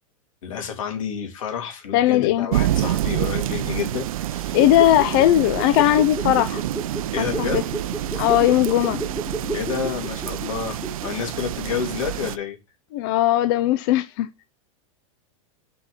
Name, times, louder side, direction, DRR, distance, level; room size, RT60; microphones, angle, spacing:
voice 1, 0.4-4.6 7.1-7.6 9.5-12.6, left 7 dB, 70° left, 2.7 m, -29 dB
voice 2, 1.9-2.5 4.5-6.6 7.2-7.6 8.2-9.0 12.9-14.3, left 13 dB, 40° left, 0.4 m, -18 dB
sound 1, 2.5-12.4, right 13 dB, 90° right, 0.5 m, -27 dB
sound 2, 4.5-11.3 11.6-11.7, right 1 dB, ahead, 1.0 m, -32 dB
6.3 x 4.4 x 5.6 m
supercardioid pair, 165°, 17 cm